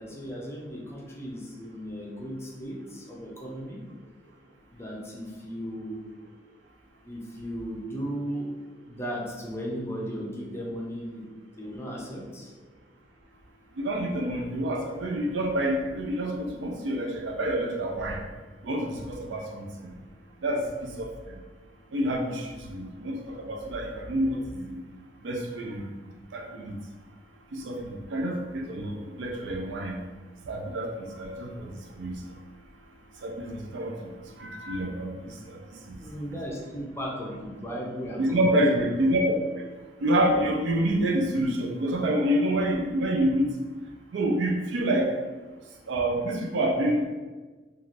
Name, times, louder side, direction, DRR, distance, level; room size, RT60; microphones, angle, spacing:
voice 1, 0.0-3.8 4.7-6.0 7.0-8.5 8.9-11.3 11.5-12.5 36.0-38.8, equal, 15° left, -3 dB, 0.5 m, -36 dB
voice 2, 13.8-18.2 18.6-19.9 20.4-21.4 21.9-24.8 25.2-25.9 26.3-26.8 27.5-30.0 30.5-32.2 33.2-34.1 34.4-35.6 35.9-36.0 36.3-36.4 38.2-39.3 39.5-39.6 40.0-43.5 44.1-45.1 45.9-47.1, right 1 dB, 75° right, 1 dB, 0.4 m, -28 dB
3.1 x 2.4 x 2.5 m, 1.3 s
head